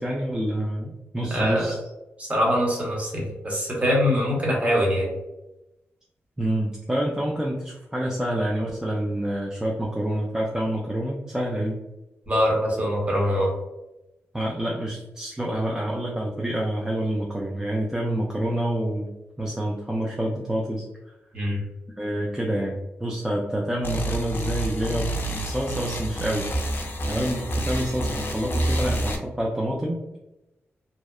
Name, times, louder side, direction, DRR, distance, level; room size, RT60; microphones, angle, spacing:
voice 1, 0.0-1.8 6.4-11.8 14.3-19.1 19.4-21.1 22.0-26.5 26.7-30.0, right 1 dB, 15° right, -2 dB, 0.4 m, -27 dB
voice 2, 1.3-1.7 2.2-5.1 12.3-13.5 21.3-21.6, equal, 30° right, -3 dB, 1.1 m, -23 dB
sound 1, 23.8-29.2, right 1 dB, 50° left, 0.4 m, -28 dB
2.7 x 2.0 x 2.3 m, 0.95 s
cardioid pair, 70°, 5 cm